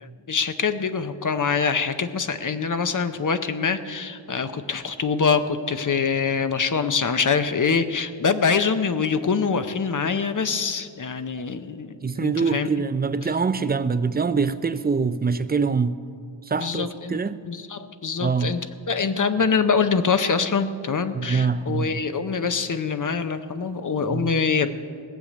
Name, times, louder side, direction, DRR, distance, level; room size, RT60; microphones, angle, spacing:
voice 1, 0.0-12.7 16.6-17.2 17.4-24.7, left 5 dB, 45° left, 0.7 m, -24 dB
voice 2, 12.0-16.0 16.5-17.4 18.2-18.5 21.1-22.0 24.1-24.3, right 5 dB, 20° right, 0.4 m, -24 dB
18.5 x 6.6 x 8.5 m
wide cardioid pair, 110°, 45 cm